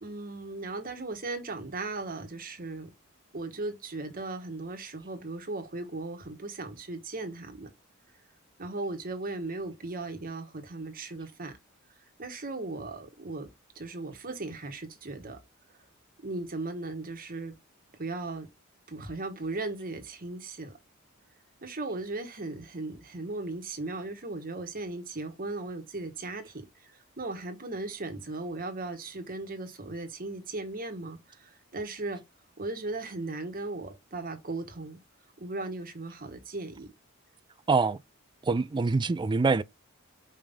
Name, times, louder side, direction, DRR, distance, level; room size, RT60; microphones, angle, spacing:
voice 1, 0.0-2.9 3.3-7.7 8.6-11.6 12.2-13.5 13.7-15.4 16.2-17.5 18.0-18.5 18.9-20.8 21.6-32.2 32.6-35.0 35.4-36.9, right 2 dB, 45° right, 1.4 m, -37 dB
voice 2, 37.7-38.0 38.4-39.6, right 4 dB, 20° right, 0.3 m, -25 dB
5.4 x 5.0 x 3.6 m
head